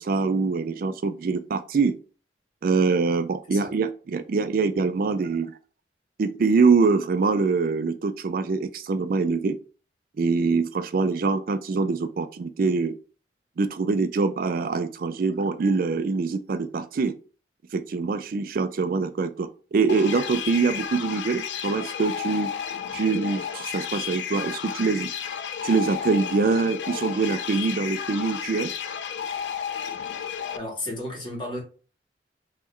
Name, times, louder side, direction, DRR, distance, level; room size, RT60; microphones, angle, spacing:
voice 1, 0.0-1.9 2.6-5.5 6.2-9.6 10.2-12.9 13.6-17.1 17.7-22.5 22.9-25.1 25.6-28.7, right 4 dB, 55° right, 0.4 m, -24 dB
sound 1, 19.9-30.6, left 8 dB, 80° left, 0.4 m, -32 dB
voice 2, 30.5-31.6, left 1 dB, 30° left, 1.8 m, -33 dB
3.7 x 3.1 x 4.4 m
head